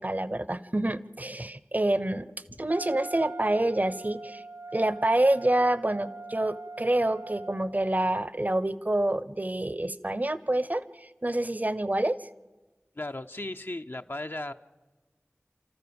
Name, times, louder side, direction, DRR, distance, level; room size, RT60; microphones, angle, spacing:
voice 1, 0.0-2.3 2.6-4.4 4.7-12.2, right 1 dB, 35° right, 17 dB, 0.8 m, -27 dB
Wind instrument woodwind instrument, 2.7-8.0, right 3 dB, 60° right, 1.1 m, -42 dB
voice 2, 12.9-14.5, left 2 dB, 50° left, 7 dB, 0.7 m, -36 dB
29.5 x 14.0 x 7.0 m, 1.2 s
wide cardioid pair, 45°, 5 cm